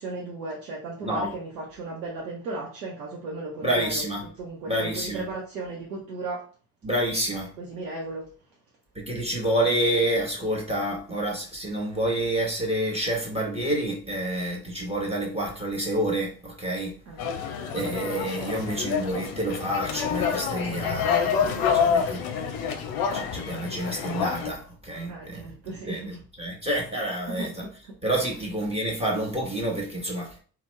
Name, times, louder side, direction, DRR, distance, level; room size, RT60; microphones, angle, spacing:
voice 1, 0.0-6.5 7.6-8.3 17.1-17.4 25.1-26.2 27.3-28.0, right 3 dB, 80° right, -1 dB, 0.7 m, -36 dB
voice 2, 3.6-4.2 4.7-5.2 6.8-7.5 8.9-16.9 17.7-22.2 23.1-25.5 25.9-27.5 28.0-30.4, right 1 dB, 10° right, -1 dB, 1.0 m, -28 dB
sound 1, 17.2-24.5, left 7 dB, 45° left, 0.6 m, -27 dB
2.8 x 2.1 x 3.1 m, 0.41 s
figure-of-eight pair, 50°, 49 cm